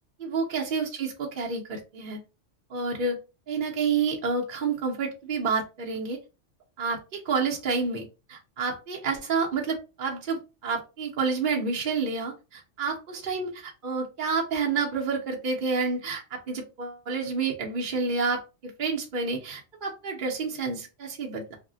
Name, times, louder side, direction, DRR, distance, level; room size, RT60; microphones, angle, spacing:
voice 1, 0.2-2.2 2.7-3.2 3.5-6.2 6.8-8.0 8.3-21.6, right 4 dB, 50° right, -1 dB, 0.7 m, -29 dB
2.6 x 2.0 x 3.7 m, 0.29 s
omnidirectional pair, 1.2 m